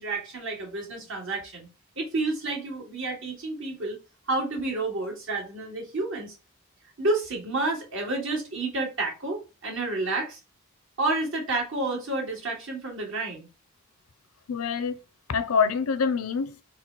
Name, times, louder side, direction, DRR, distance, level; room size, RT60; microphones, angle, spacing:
voice 1, 0.0-1.7 2.0-4.0 4.3-6.3 7.0-10.4 11.0-13.5, right 2 dB, 65° right, 1.9 m, -30 dB
voice 2, 14.5-15.0 15.3-16.6, left 5 dB, 90° left, 0.5 m, -25 dB
4.1 x 2.1 x 4.4 m
head